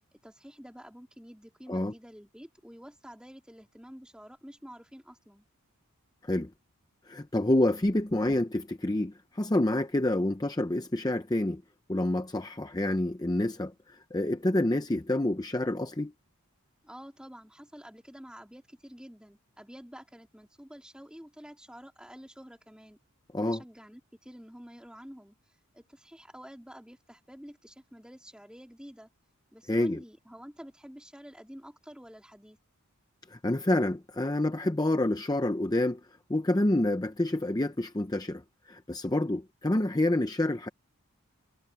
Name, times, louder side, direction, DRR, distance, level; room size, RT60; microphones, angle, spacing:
voice 1, 0.2-5.4 16.8-23.0 23.4-25.4 25.7-29.1 29.5-32.6, equal, 5° right, 3.3 m, -49 dB
voice 2, 7.1-11.6 11.9-16.1 23.3-23.6 29.7-30.0 33.3-36.0 36.3-40.7, left 1 dB, 15° left, 0.6 m, -28 dB
head